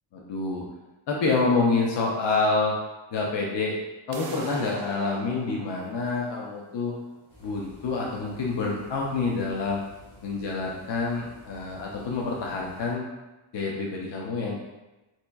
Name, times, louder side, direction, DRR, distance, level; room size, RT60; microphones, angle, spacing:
voice 1, 0.1-0.6 1.1-2.7 3.1-3.8 4.1-6.9 7.4-9.8 10.2-13.1 13.5-14.6, left 3 dB, 60° left, -2 dB, 0.6 m, -27 dB
sound 1, 4.1-10.1, right 4 dB, 55° right, 0.5 m, -44 dB
sound 2, 7.3-12.9, equal, 85° left, 1.3 m, -52 dB
4.2 x 2.5 x 2.3 m, 1.1 s
wide cardioid pair, 125°, 49 cm